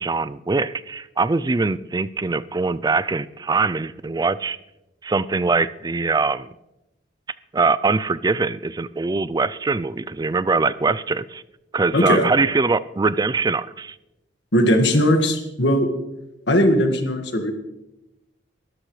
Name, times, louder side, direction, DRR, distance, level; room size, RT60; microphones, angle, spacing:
voice 1, 0.0-4.6 5.0-6.5 7.5-11.4 11.7-14.0, right 4 dB, 20° right, 16 dB, 0.4 m, -22 dB
voice 2, 11.9-12.3 14.5-15.9 16.5-17.5, equal, 65° left, 5 dB, 1.8 m, -18 dB
22.5 x 13.0 x 3.2 m, 0.93 s
head